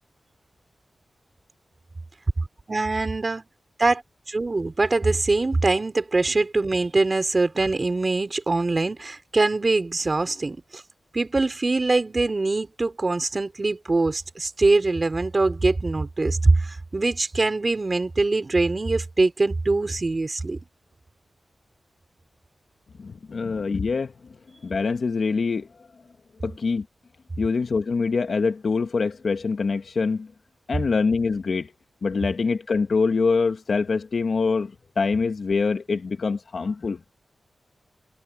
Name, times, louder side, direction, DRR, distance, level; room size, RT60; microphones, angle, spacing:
voice 1, 2.7-3.5 3.8-4.0 4.3-10.8 11.1-20.6, right 3 dB, 35° right, 4.6 m, -23 dB
voice 2, 23.0-24.1 24.6-25.7 26.4-26.8 27.4-30.3 30.7-31.7 32.0-37.0, left 4 dB, 65° left, 1.3 m, -24 dB
cardioid pair, 70°, 0 cm